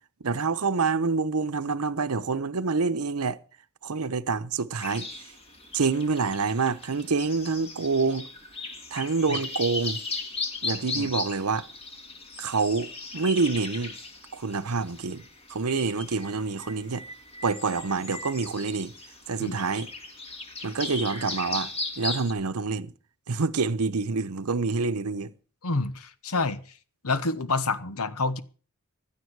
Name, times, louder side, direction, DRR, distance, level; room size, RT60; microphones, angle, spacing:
voice 1, 0.2-3.4 3.8-5.1 5.7-8.3 8.9-10.0 10.6-11.7 12.4-13.9 14.3-15.2 15.5-17.0 17.4-18.9 19.3-19.9 20.6-21.7 22.0-22.9 23.3-25.3, right 4 dB, 85° right, 0.9 m, -27 dB
sound 1, 4.8-22.3, left 3 dB, 25° left, 2.0 m, -37 dB
voice 2, 25.6-26.6 27.0-28.4, left 3 dB, 80° left, 1.1 m, -28 dB
16.0 x 11.5 x 4.8 m
head